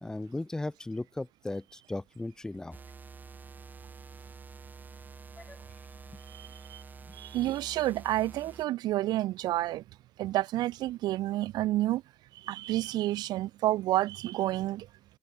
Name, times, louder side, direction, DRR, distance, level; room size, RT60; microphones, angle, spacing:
voice 1, 0.0-2.8 5.4-5.6 7.1-7.2, left 2 dB, 10° left, 1.1 m, -37 dB
sound 1, 2.7-8.7, right 5 dB, 20° right, 7.8 m, -48 dB
voice 2, 6.3-6.8 7.2-9.8 10.2-12.0 12.4-14.9, right 15 dB, 60° right, 1.2 m, -29 dB
open air
cardioid pair, 125°, 8 cm